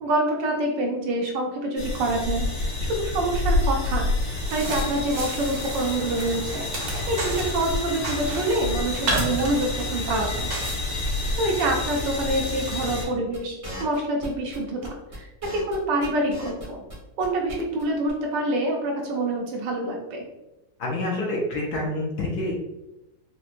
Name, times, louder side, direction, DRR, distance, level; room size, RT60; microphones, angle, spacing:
voice 1, 0.0-6.7 7.1-10.5 11.4-16.8 17.2-20.2, right 1 dB, 75° right, 1 dB, 1.2 m, -26 dB
sound 1, 1.8-13.0, left 2 dB, 90° left, 2.0 m, -29 dB
Snapping small twigs gathering wood, 4.3-10.8, right 2 dB, 55° right, 0.9 m, -33 dB
sound 2, 13.3-16.9 17.2-17.5 17.8-17.9 18.1-18.2, equal, 40° right, 0.5 m, -38 dB
voice 2, 20.8-22.5, left 1 dB, 65° left, -2 dB, 1.1 m, -27 dB
4.5 x 2.1 x 2.5 m, 0.97 s
omnidirectional pair, 2.1 m